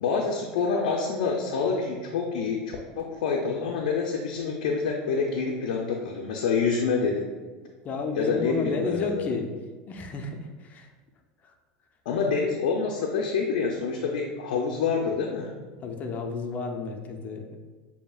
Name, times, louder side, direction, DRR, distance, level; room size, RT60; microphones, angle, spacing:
voice 1, 0.0-7.3 8.1-9.3 12.1-15.5, left 5 dB, 80° left, 0 dB, 0.5 m, -27 dB
voice 2, 7.8-9.5 9.9-10.9 15.8-17.6, left 4 dB, 35° left, 3 dB, 0.6 m, -31 dB
6.7 x 2.8 x 2.3 m, 1.3 s
supercardioid pair, 110°, 5 cm